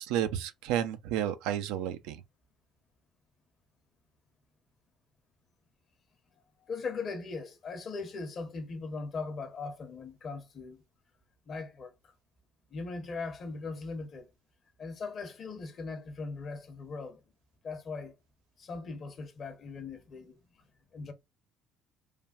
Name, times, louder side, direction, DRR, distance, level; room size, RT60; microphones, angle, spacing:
voice 1, 0.0-2.2, right 10 dB, 75° right, 0.3 m, -31 dB
voice 2, 6.6-10.8 11.5-11.9 12.7-14.3 14.8-17.2 17.6-18.2 18.6-20.6 20.9-21.1, left 4 dB, 50° left, 0.7 m, -39 dB
3.2 x 2.2 x 2.3 m
hypercardioid pair, 55°, 0 cm